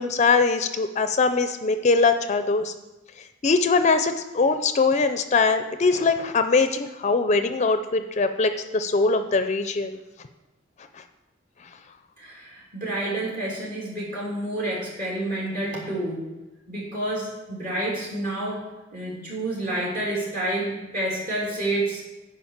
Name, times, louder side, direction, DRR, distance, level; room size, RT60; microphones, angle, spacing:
voice 1, 0.0-2.7 3.4-10.0, left 4 dB, 40° left, 9 dB, 0.5 m, -22 dB
voice 2, 12.2-16.3 16.7-22.0, right 1 dB, 50° right, -6 dB, 3.0 m, -29 dB
9.6 x 5.3 x 7.2 m, 1.1 s
head